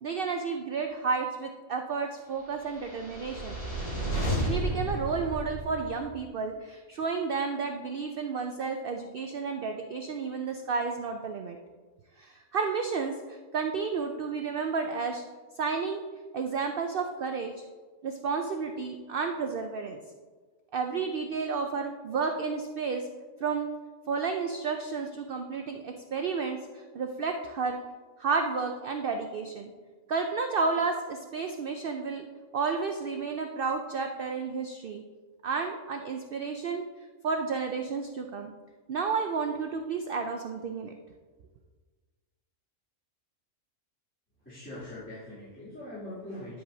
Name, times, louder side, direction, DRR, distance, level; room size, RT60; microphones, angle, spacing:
voice 1, 0.0-3.6 4.4-11.6 12.2-15.2 15.6-16.0 16.3-17.6 18.0-20.0 20.7-23.1 23.4-23.7 24.1-27.8 28.2-29.7 30.1-32.3 32.5-35.0 35.4-36.8 37.2-38.5 38.9-40.9, right 5 dB, 60° right, 5 dB, 0.6 m, -31 dB
sound 1, 2.7-6.1, right 1 dB, 50° left, 3.2 m, -32 dB
voice 2, 44.4-46.6, left 1 dB, 10° left, -13 dB, 2.8 m, -42 dB
9.9 x 7.7 x 2.7 m, 1.4 s
omnidirectional pair, 1.4 m